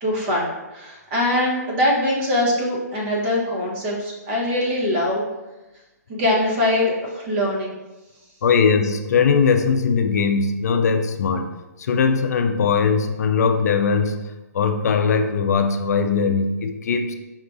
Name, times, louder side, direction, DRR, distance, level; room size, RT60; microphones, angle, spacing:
voice 1, 0.0-5.2 6.1-7.7, left 1 dB, 35° right, -3 dB, 1.1 m, -22 dB
voice 2, 8.4-17.1, left 5 dB, 70° left, 7 dB, 0.4 m, -20 dB
5.4 x 2.3 x 2.5 m, 1.1 s
hypercardioid pair, 145°, 9 cm